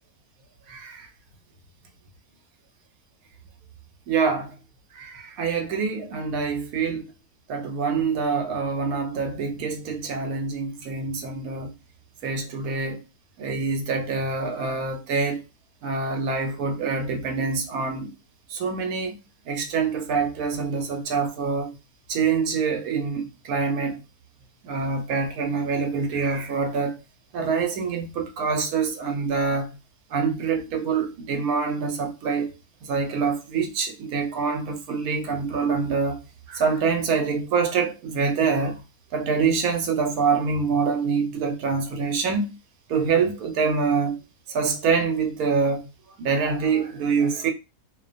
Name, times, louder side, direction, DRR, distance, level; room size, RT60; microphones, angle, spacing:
voice 1, 0.7-1.1 4.1-4.5 4.9-7.1 7.5-11.7 12.2-13.0 13.4-15.4 15.8-18.1 18.5-19.1 19.5-21.7 22.1-24.0 24.6-27.0 27.3-29.8 30.1-32.5 32.8-36.2 36.5-38.8 39.1-42.6 42.9-44.2 44.5-45.9 46.2-47.5, right 5 dB, 80° right, 1.1 m, -25 dB
2.5 x 2.1 x 2.5 m
omnidirectional pair, 1.6 m